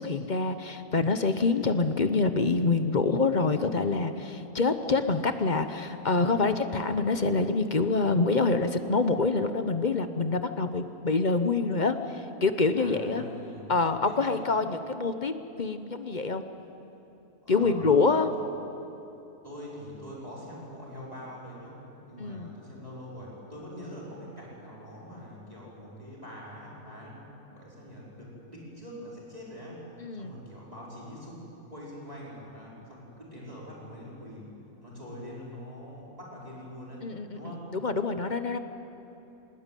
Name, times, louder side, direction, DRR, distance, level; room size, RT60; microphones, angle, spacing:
voice 1, 0.0-13.2 13.7-15.3 15.6-16.4 17.5-18.3 22.2-22.5 30.0-30.3 37.0-38.6, left 3 dB, 35° left, 9 dB, 0.8 m, -26 dB
voice 2, 12.8-13.7 14.0-14.6 17.4-18.1 19.4-29.8 30.2-31.4 31.7-34.5 34.8-37.1 37.3-37.7, equal, 25° right, -6 dB, 5.0 m, -44 dB
20.5 x 20.0 x 9.1 m, 3.0 s
omnidirectional pair, 1.6 m